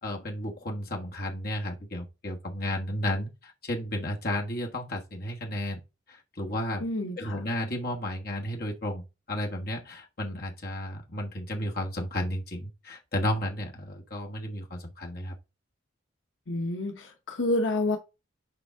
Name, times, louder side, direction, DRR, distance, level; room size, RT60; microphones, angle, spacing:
voice 1, 0.0-5.8 6.1-6.8 7.2-15.4, left 1 dB, 50° left, 1.4 m, -33 dB
voice 2, 6.8-7.4 16.5-18.0, left 2 dB, 75° left, 1.0 m, -29 dB
6.8 x 4.6 x 3.7 m
head